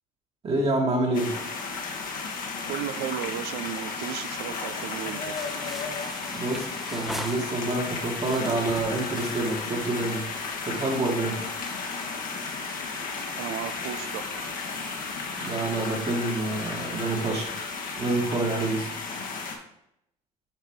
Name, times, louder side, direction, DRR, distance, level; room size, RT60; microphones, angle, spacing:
voice 1, 0.4-1.3 6.3-10.2 10.7-11.4 15.4-17.5 18.0-18.9, right 2 dB, 35° right, -2 dB, 1.6 m, -27 dB
sound 1, 1.1-19.6, left 4 dB, 50° left, 1.4 m, -34 dB
voice 2, 2.7-5.5 13.4-14.2, right 11 dB, 65° right, 11 dB, 0.5 m, -35 dB
sound 2, 5.3-7.8 8.2-10.5, equal, ahead, 0.9 m, -41 dB
7.5 x 4.7 x 3.6 m, 0.78 s
hypercardioid pair, 65°, 18 cm